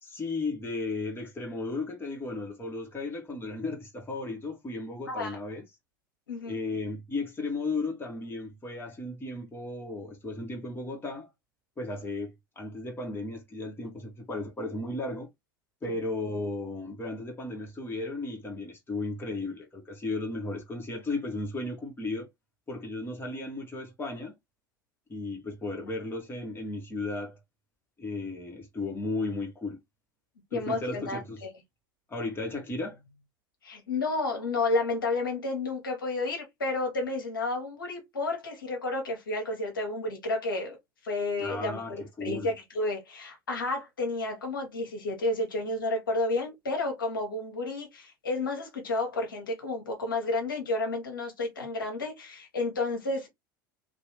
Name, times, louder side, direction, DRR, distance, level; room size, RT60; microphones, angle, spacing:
voice 1, 0.0-5.6 6.5-11.3 11.8-15.3 15.8-22.3 22.7-24.3 25.1-27.4 28.0-29.8 30.5-31.4 32.1-33.2 41.4-42.5, left 2 dB, 20° left, 1.9 m, -35 dB
voice 2, 5.1-5.4 6.3-6.6 15.9-16.0 30.5-31.5 33.6-40.8 41.0-41.8 42.2-53.3, left 2 dB, 85° left, 1.5 m, -31 dB
3.1 x 3.0 x 3.2 m
hypercardioid pair, 80°, 11 cm